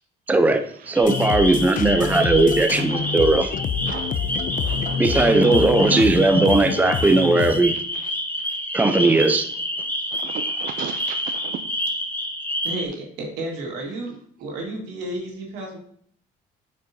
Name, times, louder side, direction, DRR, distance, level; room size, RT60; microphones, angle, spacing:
voice 1, 0.3-3.5 5.0-7.7 8.7-9.5, right 2 dB, 10° right, 7 dB, 0.6 m, -18 dB
sound 1, 0.9-12.9, equal, 10° left, 0.9 m, -28 dB
sound 2, 1.0-7.6, left 7 dB, 50° left, 0.5 m, -27 dB
voice 2, 2.8-3.1 3.5-3.6 3.9-4.1 4.5-6.1 7.9-8.1 8.4-8.6 8.9-9.4 10.1-11.6, right 9 dB, 55° right, 8 dB, 0.4 m, -37 dB
voice 3, 12.6-15.8, right 1 dB, 90° right, -1 dB, 2.0 m, -32 dB
8.4 x 5.3 x 2.8 m, 0.62 s
cardioid pair, 110°, 17 cm